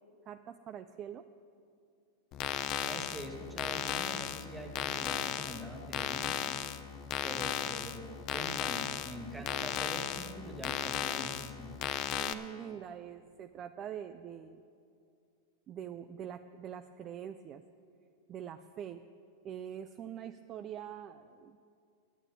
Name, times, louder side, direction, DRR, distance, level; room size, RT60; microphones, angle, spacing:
voice 1, 0.3-1.2 12.2-14.6 15.7-17.6 18.3-19.0 19.4-21.6, right 9 dB, 30° right, 10 dB, 0.3 m, -44 dB
sound 1, 2.3-12.3, left 10 dB, 40° left, 0.6 m, -36 dB
voice 2, 2.8-6.6 7.2-11.8, right 1 dB, 5° right, 2 dB, 1.5 m, -44 dB
9.1 x 9.0 x 9.0 m, 2.4 s
supercardioid pair, 145°, 0 cm